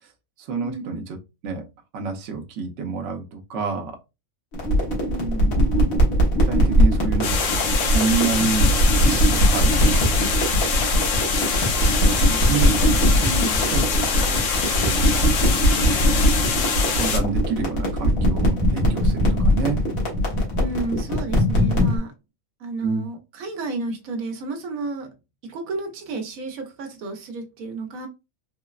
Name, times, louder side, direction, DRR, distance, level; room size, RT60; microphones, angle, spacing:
voice 1, 0.4-1.0 1.4-1.6 1.9-4.0 6.5-8.7 9.0-10.0 12.5-12.7 13.7-15.1 16.9-19.8 22.8-23.1, right 5 dB, 65° right, 0.9 m, -28 dB
sound 1, 4.5-22.0, equal, 85° left, 1.6 m, -20 dB
voice 2, 5.0-5.6 12.2-13.8 20.6-22.1 22.6-25.1 25.4-28.1, right 3 dB, 85° right, 1.1 m, -32 dB
sound 2, 7.2-17.2, left 6 dB, 70° left, 0.9 m, -25 dB
3.9 x 2.0 x 2.3 m
omnidirectional pair, 1.4 m